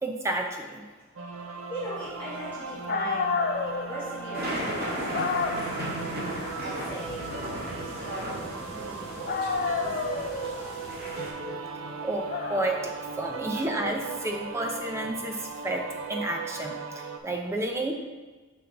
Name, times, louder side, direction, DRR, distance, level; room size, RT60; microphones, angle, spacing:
voice 1, 0.0-0.9 12.0-15.8 16.1-17.9, right 1 dB, 15° right, 2 dB, 0.4 m, -31 dB
sound 1, 1.2-17.2, right 5 dB, 90° right, 0.5 m, -38 dB
voice 2, 1.4-3.3 3.9-5.6 6.6-7.3 7.8-9.5 9.8-10.6 13.4-13.5, equal, 10° left, -13 dB, 2.2 m, -40 dB
Dog, 2.6-2.7 2.9-8.9 9.3-16.0, left 4 dB, 50° left, 0.4 m, -33 dB
sound 2, 4.3-11.3, equal, 50° right, 1.8 m, -36 dB
8.4 x 5.3 x 2.9 m, 1.3 s
head